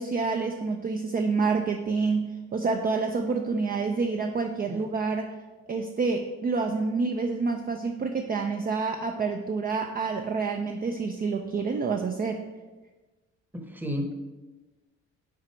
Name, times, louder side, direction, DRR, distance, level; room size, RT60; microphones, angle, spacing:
voice 1, 0.0-5.3 5.7-12.4, right 4 dB, 30° right, 4 dB, 0.4 m, -28 dB
voice 2, 13.5-14.1, left 1 dB, 5° right, 4 dB, 0.9 m, -32 dB
6.0 x 4.0 x 4.4 m, 1.2 s
cardioid pair, 90°, 30 cm